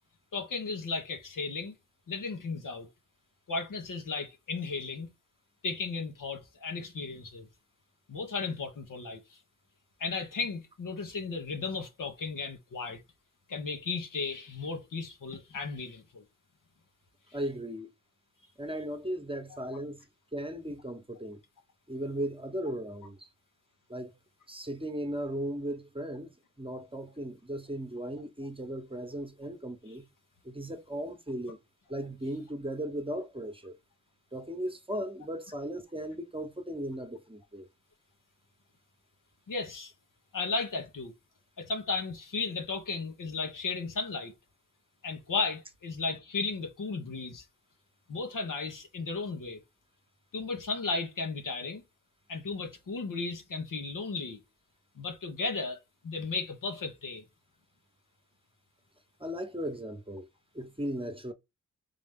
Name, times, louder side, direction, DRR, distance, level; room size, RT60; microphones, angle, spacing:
voice 1, 0.3-1.8 2.1-2.9 3.5-5.1 5.6-7.5 8.1-9.4 10.0-13.0 13.5-16.2 39.5-39.9 40.3-41.1 41.6-44.3 45.0-47.4 48.1-49.6 50.3-51.8 52.3-54.4 54.9-57.2, left 4 dB, 80° left, 1.1 m, -35 dB
voice 2, 17.3-17.9 18.6-20.0 20.3-21.4 21.9-23.3 23.9-24.1 24.5-26.3 26.6-30.0 30.4-31.6 31.9-33.8 34.3-37.7 59.2-60.3 60.5-61.3, right 1 dB, 15° right, 0.9 m, -37 dB
3.9 x 3.2 x 3.6 m
cardioid pair, 55°, 31 cm